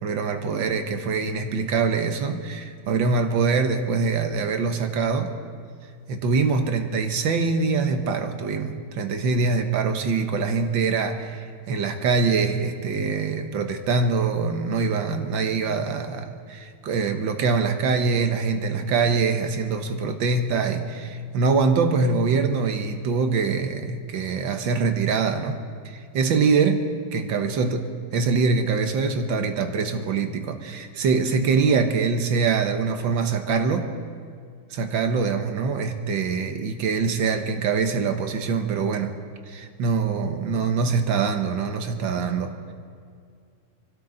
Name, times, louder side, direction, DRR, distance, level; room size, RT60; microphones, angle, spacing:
voice 1, 0.0-5.3 6.1-25.6 25.9-26.8 27.1-33.9 34.7-39.1 39.5-42.7, right 4 dB, 90° right, 6 dB, 1.9 m, -24 dB
28.0 x 13.0 x 3.9 m, 2.2 s
omnidirectional pair, 2.0 m